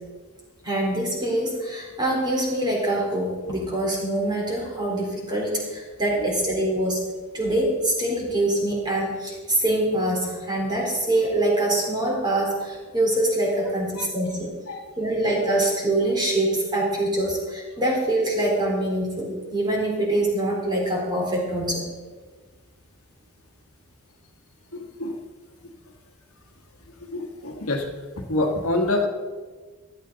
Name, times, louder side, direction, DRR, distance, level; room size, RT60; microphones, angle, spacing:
voice 1, 0.6-7.0 7.3-14.5 15.0-21.8, right 1 dB, 20° right, -2 dB, 3.9 m, -24 dB
voice 2, 14.4-14.8 24.7-25.2 27.0-27.9 28.2-29.1, left 2 dB, 70° left, 3 dB, 1.5 m, -27 dB
15.5 x 12.0 x 4.0 m, 1.4 s
head